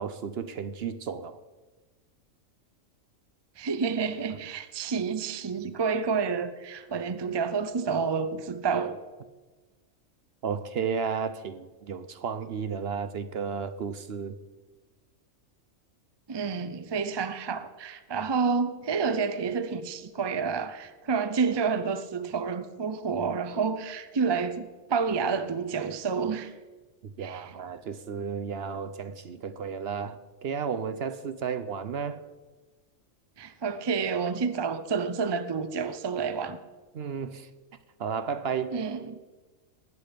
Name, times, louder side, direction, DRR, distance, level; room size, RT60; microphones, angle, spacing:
voice 1, 0.0-1.4 10.4-14.4 27.0-32.2 36.9-37.5 38.0-38.7, right 6 dB, 55° right, 0.8 m, -33 dB
voice 2, 3.6-9.0 16.3-26.5 27.2-27.4 33.4-36.6 38.7-39.2, right 5 dB, 35° right, 0.4 m, -29 dB
19.5 x 8.5 x 5.2 m
omnidirectional pair, 1.4 m